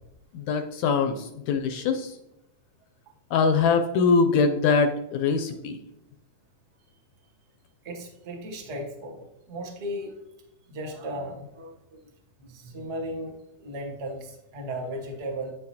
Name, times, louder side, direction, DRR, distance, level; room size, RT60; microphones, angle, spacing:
voice 1, 0.3-2.2 3.3-5.8, left 5 dB, 80° left, 6 dB, 1.7 m, -23 dB
voice 2, 7.8-10.1 10.7-12.0 12.4-15.5, right 1 dB, 60° right, 0 dB, 0.6 m, -36 dB
9.3 x 6.6 x 2.8 m, 0.89 s
omnidirectional pair, 3.7 m